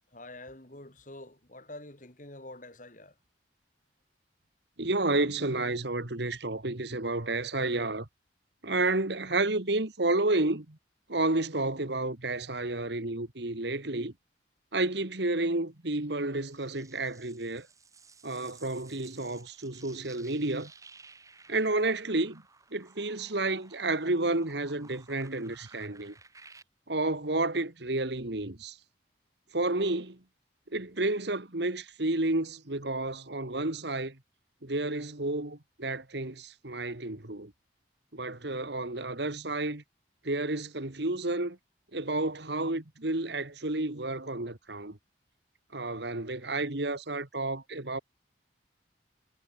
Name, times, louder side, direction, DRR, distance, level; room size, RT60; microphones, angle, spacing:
voice 1, 0.1-3.2, left 2 dB, 45° left, 3.0 m, -47 dB
voice 2, 4.8-8.1 8.6-10.8 11.1-14.1 14.7-17.7 18.2-20.7 21.5-22.4 22.7-26.1 26.9-28.8 29.5-30.2 30.7-34.2 34.6-37.5 38.1-39.8 40.2-41.6 41.9-45.0 45.7-48.0, right 2 dB, 65° right, 2.0 m, -31 dB
sound 1, 16.0-26.6, right 4 dB, 15° right, 5.0 m, -56 dB
head